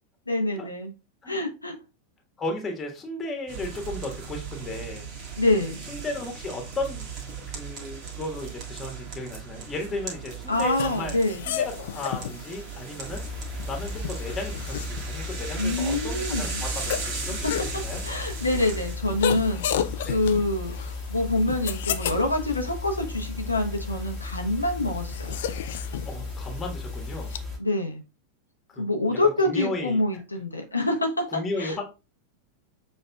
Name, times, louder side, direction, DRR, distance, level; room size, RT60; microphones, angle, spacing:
voice 1, 0.3-0.9 1.3-1.7 5.4-5.8 10.5-11.5 15.6-16.6 18.0-25.4 27.6-28.0 28.8-31.8, left 2 dB, 80° left, 2 dB, 0.9 m, -26 dB
voice 2, 2.4-5.1 5.9-7.1 7.5-11.1 11.5-13.2 13.6-18.0 20.0-20.2 26.0-27.3 28.7-30.0 30.7-30.9 31.3-31.8, left 2 dB, 20° left, 2 dB, 1.5 m, -35 dB
sound 1, 3.5-19.0, right 5 dB, 40° right, 1.5 m, -37 dB
sound 2, 10.6-27.4, left 9 dB, 55° left, 0.4 m, -35 dB
sound 3, 13.1-27.6, left 3 dB, 15° right, 1.5 m, -35 dB
6.6 x 3.5 x 2.3 m, 0.29 s
figure-of-eight pair, 90°, 0 cm